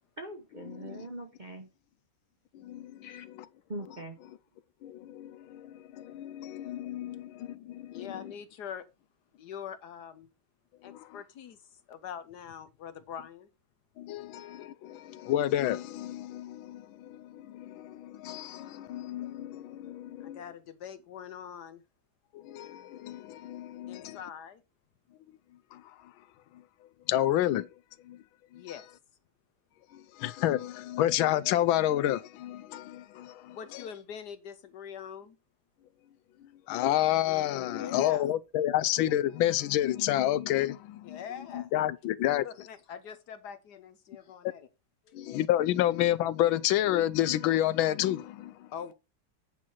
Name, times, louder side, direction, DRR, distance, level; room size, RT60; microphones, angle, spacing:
voice 1, 0.2-1.7 3.7-4.2, right 1 dB, 35° right, 0.8 m, -41 dB
voice 2, 2.5-3.2 4.8-8.1 10.9-11.0 14.0-20.4 22.3-24.2 25.7-25.8 27.1-27.7 28.1-28.2 28.5-28.6 29.9-33.8 36.7-41.2 41.5-42.5 45.1-48.7, left 13 dB, 80° left, 1.4 m, -30 dB
voice 3, 7.9-8.8 9.4-10.3 10.8-11.6 11.9-13.5 20.2-21.8 23.9-24.6 28.5-28.9 33.5-35.4 37.7-38.3 41.0-41.7 42.4-44.7 45.1-45.2 48.7-48.9, left 8 dB, 65° left, 1.1 m, -43 dB
9.0 x 4.6 x 5.6 m
omnidirectional pair, 2.2 m